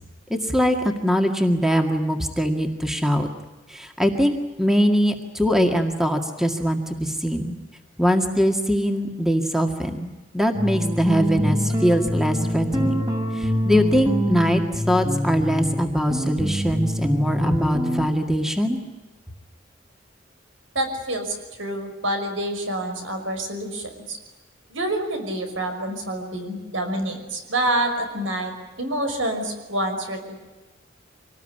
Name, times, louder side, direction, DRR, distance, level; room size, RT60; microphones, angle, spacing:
voice 1, 0.3-3.3 3.7-7.5 8.0-10.1 10.3-13.0 13.3-18.8, equal, ahead, 4 dB, 2.0 m, -22 dB
sound 1, 10.5-18.1, equal, 20° right, 3.5 m, -25 dB
voice 2, 20.7-24.2 24.7-30.4, right 1 dB, 80° right, 5 dB, 5.8 m, -27 dB
26.0 x 19.5 x 10.0 m, 1.2 s
head